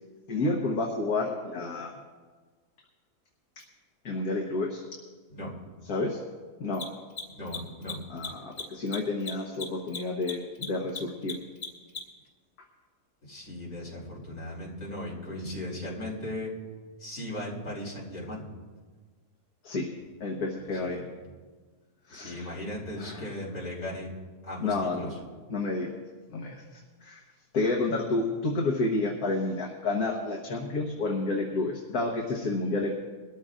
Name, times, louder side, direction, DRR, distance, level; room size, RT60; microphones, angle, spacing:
voice 1, 0.3-1.9 4.0-4.8 5.9-6.2 6.6-6.8 8.1-11.4 19.6-19.9 20.2-21.0 22.1-22.5 23.0-23.3 24.6-25.0 25.5-25.9 26.3-26.6 27.0-27.2 27.5-33.0, left 2 dB, 70° left, -1 dB, 1.7 m, -30 dB
Mechanisms, 3.6-3.7 6.6-12.3, left 5 dB, 90° left, 2.7 m, -38 dB
voice 2, 7.3-8.0 13.2-16.5 17.0-18.4 20.8-21.0 22.1-24.1 24.4-25.1, left 1 dB, 55° left, -5 dB, 3.8 m, -37 dB
22.0 x 13.5 x 2.5 m, 1.4 s
omnidirectional pair, 1.7 m